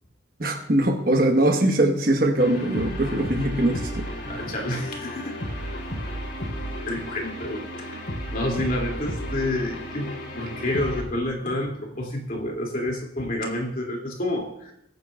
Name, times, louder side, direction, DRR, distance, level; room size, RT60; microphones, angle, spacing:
voice 1, 0.4-4.1, right 1 dB, 55° right, 3 dB, 1.2 m, -22 dB
sound 1, 2.4-11.0, equal, 80° left, 3.3 m, -33 dB
voice 2, 4.2-5.4 6.8-8.0 8.3-14.7, left 1 dB, 50° left, 0 dB, 2.6 m, -29 dB
22.0 x 9.3 x 2.4 m, 0.77 s
head